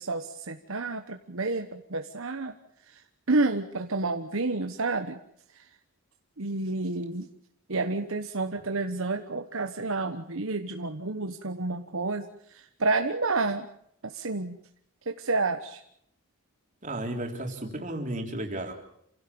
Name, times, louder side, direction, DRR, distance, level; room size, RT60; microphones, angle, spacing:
voice 1, 0.0-2.5 2.9-3.0 3.3-5.2 5.5-5.6 6.4-7.3 7.7-13.7 14.0-14.6 15.1-15.8, right 3 dB, 65° right, 6 dB, 1.2 m, -30 dB
voice 2, 16.8-18.7, right 1 dB, 35° right, 2 dB, 3.7 m, -33 dB
28.0 x 17.0 x 7.0 m, 0.71 s
head